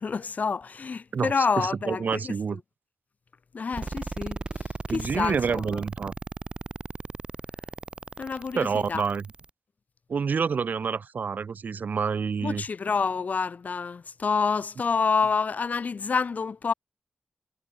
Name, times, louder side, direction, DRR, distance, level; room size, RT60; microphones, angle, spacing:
voice 1, 0.0-2.3 3.5-5.8 8.2-9.0 12.4-16.7, left 5 dB, 60° left, 2.5 m, -28 dB
voice 2, 1.1-2.6 4.9-6.1 8.5-9.2 10.1-12.6, right 6 dB, 75° right, 2.5 m, -28 dB
sound 1, 3.7-9.5, right 3 dB, 35° right, 2.8 m, -36 dB
wide cardioid pair, 125°, 3 cm